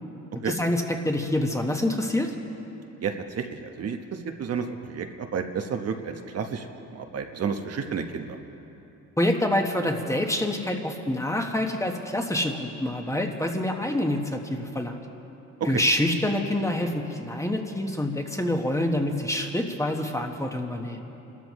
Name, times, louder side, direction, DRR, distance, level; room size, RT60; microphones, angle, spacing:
voice 1, 0.4-2.3 9.2-15.0 15.7-21.1, left 1 dB, 10° left, 3 dB, 1.3 m, -26 dB
voice 2, 3.0-8.4, right 6 dB, 55° right, 5 dB, 1.1 m, -31 dB
27.5 x 13.0 x 3.1 m, 2.9 s
cardioid pair, 90°, 30 cm